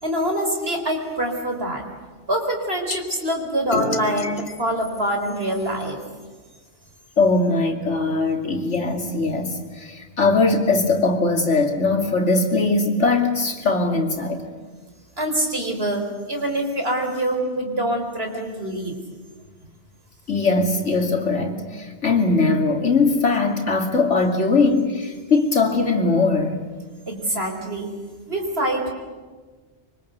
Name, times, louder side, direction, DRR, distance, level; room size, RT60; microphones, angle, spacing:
voice 1, 0.0-1.9 2.3-6.0 15.2-19.0 27.1-27.9 28.3-28.9, right 1 dB, 60° right, 4.7 m, -25 dB
sound 1, 2.9-3.0 3.7-5.9, left 4 dB, 60° left, 1.9 m, -31 dB
voice 2, 7.2-14.4 20.3-26.6, left 3 dB, 85° left, 3.1 m, -20 dB
25.0 x 24.5 x 8.2 m
omnidirectional pair, 1.2 m